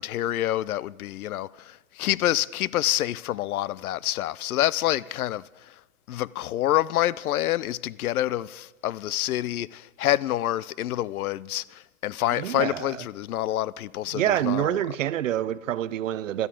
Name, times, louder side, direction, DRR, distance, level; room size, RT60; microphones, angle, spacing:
voice 1, 0.0-5.7 6.1-14.8, left 14 dB, 85° left, 0.5 m, -27 dB
voice 2, 12.4-13.0 14.1-16.5, right 11 dB, 65° right, 0.6 m, -27 dB
15.0 x 12.5 x 5.1 m
hypercardioid pair, 175°, 42 cm